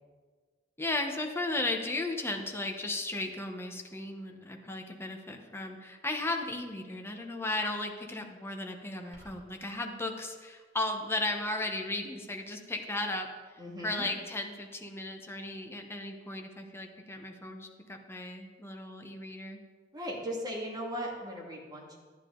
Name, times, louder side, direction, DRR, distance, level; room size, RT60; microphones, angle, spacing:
voice 1, 0.8-13.3 13.8-19.6, left 2 dB, 15° left, 3 dB, 0.9 m, -35 dB
sound 1, 9.1-9.6, equal, 40° right, 3.3 m, -54 dB
voice 2, 13.6-14.1 19.9-22.0, equal, 20° right, -3 dB, 2.1 m, -38 dB
11.5 x 9.7 x 3.8 m, 1.5 s
head